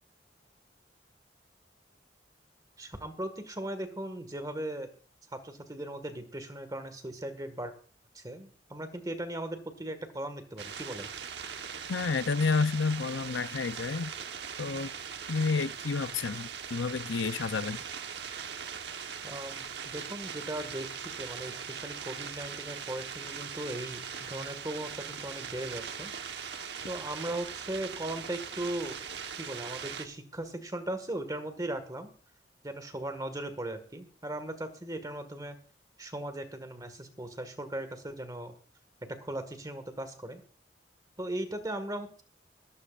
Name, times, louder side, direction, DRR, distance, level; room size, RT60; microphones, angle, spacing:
voice 1, 2.8-4.9 5.3-7.7 8.1-11.1 19.2-26.1 26.9-29.0 29.4-32.1 32.6-35.6 36.0-38.6 39.1-40.4 41.2-42.2, right 1 dB, 20° right, 1.7 m, -38 dB
sound 1, 10.6-30.1, right 7 dB, 65° right, 1.2 m, -40 dB
voice 2, 11.9-14.1 14.6-14.9 15.3-17.8, left 4 dB, 85° left, 0.6 m, -30 dB
22.0 x 12.0 x 2.5 m
head